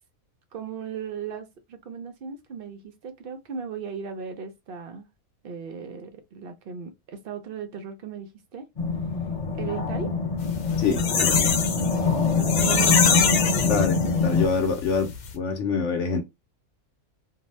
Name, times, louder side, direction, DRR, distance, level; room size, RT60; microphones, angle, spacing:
voice 1, 0.5-5.1 5.4-8.7 9.5-10.1 10.9-11.2 12.0-14.4, right 6 dB, 70° right, 0.5 m, -37 dB
sound 1, 8.8-14.5, left 4 dB, 40° left, 0.5 m, -24 dB
sound 2, 10.5-14.4 14.8-14.9 15.1-15.3, left 6 dB, 85° left, 1.2 m, -24 dB
voice 2, 10.8-11.5 13.6-16.2, left 5 dB, 65° left, 0.9 m, -26 dB
2.6 x 2.1 x 3.1 m
omnidirectional pair, 1.5 m